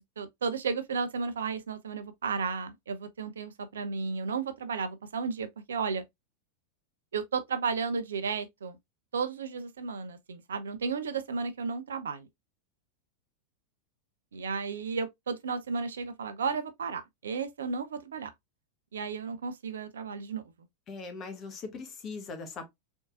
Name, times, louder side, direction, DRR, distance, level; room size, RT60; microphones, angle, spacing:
voice 1, 0.0-6.0 7.1-8.8 9.1-12.3 14.3-18.3 18.9-20.4, right 5 dB, 65° right, 0.6 m, -33 dB
voice 2, 20.9-22.7, left 4 dB, 30° left, 1.2 m, -40 dB
3.8 x 3.6 x 2.5 m
figure-of-eight pair, 90°, 0 cm